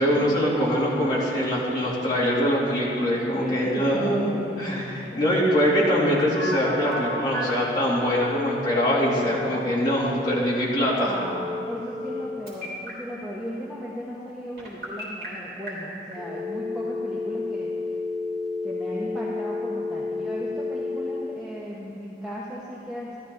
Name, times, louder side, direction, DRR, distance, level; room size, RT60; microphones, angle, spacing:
voice 1, 0.0-11.1, equal, 20° left, -7 dB, 2.6 m, -23 dB
voice 2, 3.3-5.2 5.8-6.1 11.0-17.7 18.6-23.2, equal, 5° right, -7 dB, 1.0 m, -36 dB
Telephone, 5.6-7.7 8.2-9.2 11.2-12.2 12.5-12.9 14.6-15.3 15.7-15.8 16.1-21.2, left 2 dB, 55° right, 3.3 m, -31 dB
13.0 x 12.5 x 3.9 m, 2.7 s
head